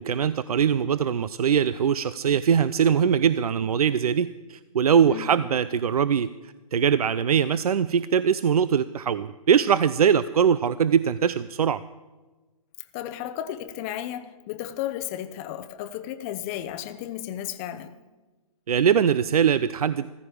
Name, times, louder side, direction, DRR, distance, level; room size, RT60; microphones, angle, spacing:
voice 1, 0.0-6.3 6.7-11.8 18.7-20.1, right 7 dB, 80° right, 0.5 m, -22 dB
voice 2, 12.9-17.9, left 12 dB, 25° left, 0.7 m, -34 dB
15.5 x 14.5 x 5.0 m
hypercardioid pair, 150°, 19 cm